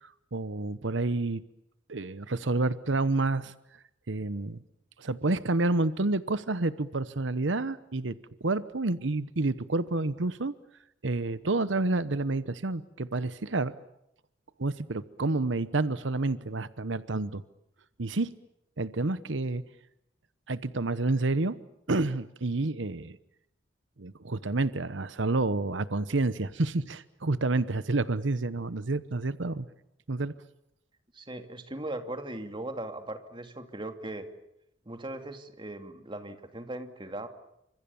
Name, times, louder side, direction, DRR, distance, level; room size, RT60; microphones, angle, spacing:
voice 1, 0.0-1.4 1.9-3.5 4.1-4.6 5.0-10.5 11.0-13.7 14.6-17.4 18.0-18.3 18.8-19.6 20.5-21.6 21.9-23.2 24.0-29.7 30.1-30.3, right 2 dB, 85° right, 15 dB, 1.0 m, -29 dB
voice 2, 31.1-34.3 34.9-37.3, right 1 dB, 25° right, 7 dB, 2.6 m, -39 dB
29.0 x 26.0 x 7.1 m, 0.79 s
head